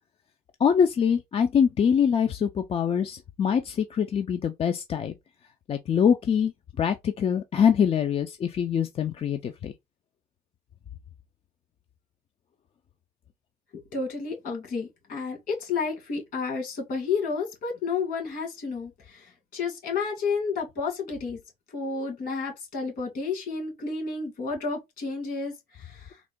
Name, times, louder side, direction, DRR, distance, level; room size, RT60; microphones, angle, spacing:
voice 1, 0.6-5.1 5.7-6.5 6.8-9.7, left 7 dB, 35° left, 0.4 m, -24 dB
voice 2, 13.7-21.4 21.7-26.2, left 4 dB, 60° left, 2.0 m, -31 dB
3.6 x 2.1 x 3.5 m
cardioid pair, 110°, 17 cm